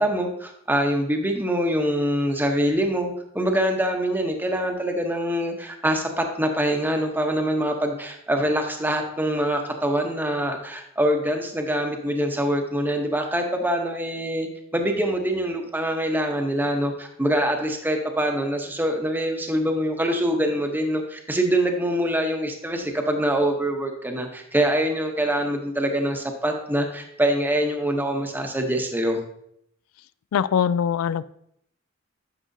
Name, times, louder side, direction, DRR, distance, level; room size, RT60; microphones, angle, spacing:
voice 1, 0.0-14.5 14.7-29.2, right 1 dB, 10° right, 3 dB, 0.8 m, -24 dB
voice 2, 30.3-31.2, left 8 dB, 90° left, 18 dB, 0.3 m, -22 dB
10.0 x 6.2 x 2.7 m, 0.73 s
head